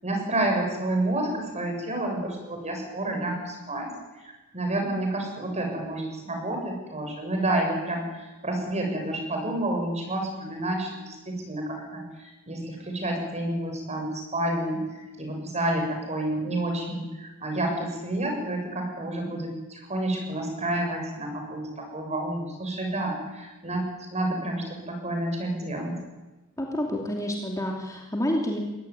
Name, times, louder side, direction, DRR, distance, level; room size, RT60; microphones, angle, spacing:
voice 1, 0.0-3.9 4.5-8.2 8.4-14.8 15.2-23.8 24.1-25.9, right 1 dB, 30° right, 3 dB, 6.9 m, -29 dB
voice 2, 26.6-28.6, equal, 15° left, 0 dB, 2.9 m, -28 dB
22.5 x 18.0 x 9.7 m, 1.1 s
head